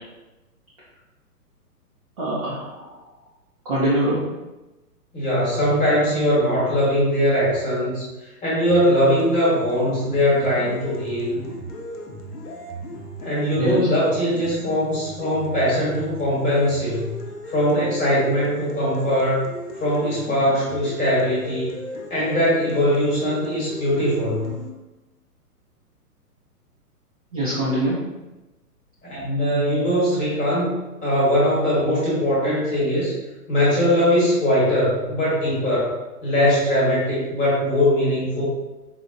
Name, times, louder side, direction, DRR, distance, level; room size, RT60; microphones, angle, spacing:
voice 1, 2.2-2.9 3.7-4.3 13.6-13.8 27.3-28.1, right 1 dB, 25° right, -9 dB, 0.4 m, -23 dB
voice 2, 5.1-8.1 8.4-11.4 13.2-17.1 17.5-19.4 19.8-21.7 22.1-24.5 29.0-30.7 31.0-33.1 33.5-35.9 36.2-38.4, equal, 15° left, -8 dB, 1.1 m, -21 dB
sound 1, 8.7-24.7, equal, 80° left, 0.8 m, -36 dB
4.2 x 2.1 x 2.5 m, 1.1 s
figure-of-eight pair, 125°, 47 cm